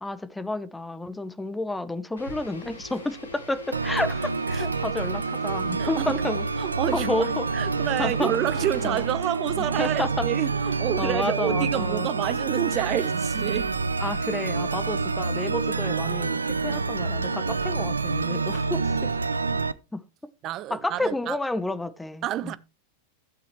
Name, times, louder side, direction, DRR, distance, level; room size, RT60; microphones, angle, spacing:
voice 1, 0.0-6.4 6.9-7.5 8.0-8.3 8.8-9.0 9.6-10.3 11.0-12.1 14.0-19.1 19.9-20.0 20.7-22.6, left 2 dB, 5° left, 0.9 m, -30 dB
sound 1, 2.2-9.2, left 3 dB, 75° left, 1.9 m, -42 dB
sound 2, 3.7-19.7, right 4 dB, 75° right, 0.5 m, -27 dB
voice 2, 5.8-6.1 6.6-13.7 20.4-21.4 22.2-22.6, right 13 dB, 35° right, 0.6 m, -29 dB
15.0 x 6.8 x 3.1 m
figure-of-eight pair, 90°, 0 cm